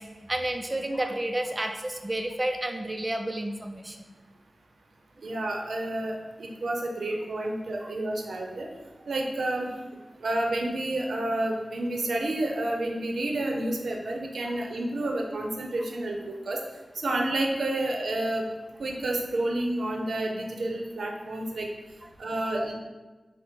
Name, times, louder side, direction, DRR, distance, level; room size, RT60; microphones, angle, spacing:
voice 1, 0.0-4.0 7.4-7.5 7.8-7.9 14.4-14.6 22.0-22.4, right 1 dB, 20° right, 4 dB, 0.4 m, -31 dB
voice 2, 5.2-8.7 9.1-9.7 10.2-16.6 17.0-18.4 18.8-21.7 22.2-22.7, right 1 dB, 90° right, 1 dB, 0.6 m, -30 dB
4.9 x 2.0 x 4.4 m, 1.2 s
wide cardioid pair, 85°, 0 cm